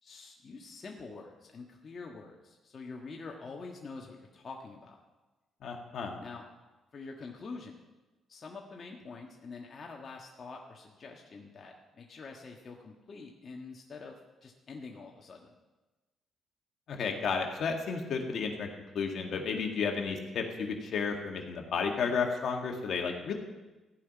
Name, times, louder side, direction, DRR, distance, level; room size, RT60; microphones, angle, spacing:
voice 1, 0.0-5.0 6.2-6.4 6.9-7.8 8.3-14.2 14.4-15.5, left 4 dB, 45° left, 0 dB, 1.5 m, -46 dB
voice 2, 5.6-6.2 16.9-18.7 18.9-23.3, left 5 dB, 65° left, 2 dB, 2.0 m, -32 dB
15.0 x 5.8 x 9.3 m, 1.2 s
cardioid pair, 90°, 0 cm